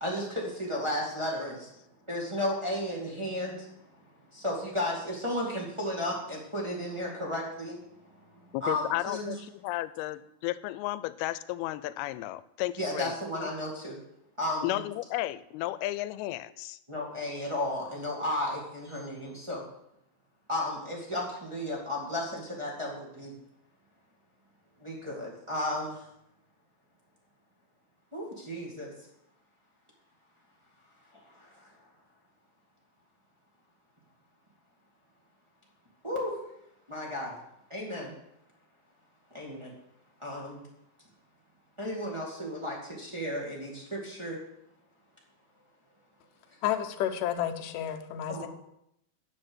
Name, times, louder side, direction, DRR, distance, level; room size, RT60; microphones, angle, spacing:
voice 1, 0.0-1.7 2.1-3.7 4.3-7.8 8.2-8.3 8.6-9.3 12.8-14.0 14.4-14.8 16.9-19.6 20.5-23.3 24.8-26.0 28.1-28.9 31.3-31.7 36.0-36.3 36.9-37.4 37.7-38.1 39.3-39.7 40.2-40.6 41.8-44.4 48.3-48.5, left 1 dB, 15° right, -4 dB, 0.9 m, -33 dB
voice 2, 8.5-13.5 14.6-16.8, left 16 dB, 90° left, 16 dB, 2.5 m, -34 dB
voice 3, 46.6-48.5, left 10 dB, 75° left, 6 dB, 2.2 m, -31 dB
9.9 x 6.7 x 6.2 m, 0.78 s
omnidirectional pair, 4.4 m